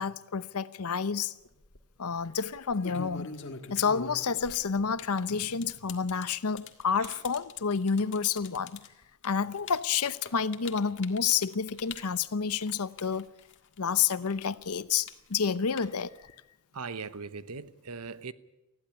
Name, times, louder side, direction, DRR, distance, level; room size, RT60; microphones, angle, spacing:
voice 1, 0.0-1.3 2.0-3.3 3.7-8.8 9.2-13.3 13.8-16.1, left 6 dB, 85° left, 0.8 m, -29 dB
sound 1, 1.4-1.8 2.5-13.9 14.2-16.3, left 4 dB, 55° left, 1.8 m, -44 dB
voice 2, 16.7-18.3, right 4 dB, 85° right, 1.0 m, -40 dB
20.5 x 15.0 x 9.9 m
head